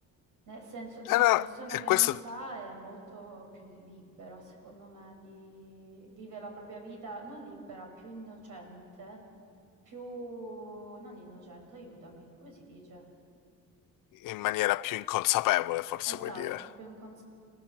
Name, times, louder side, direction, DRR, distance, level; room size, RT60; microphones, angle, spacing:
voice 1, 0.5-9.2 9.8-13.0 16.1-17.2, right 2 dB, 75° right, 6.2 m, -45 dB
voice 2, 1.1-2.2 14.2-16.6, left 17 dB, 85° left, 0.6 m, -27 dB
30.0 x 17.0 x 7.5 m
cardioid pair, 110°, 32 cm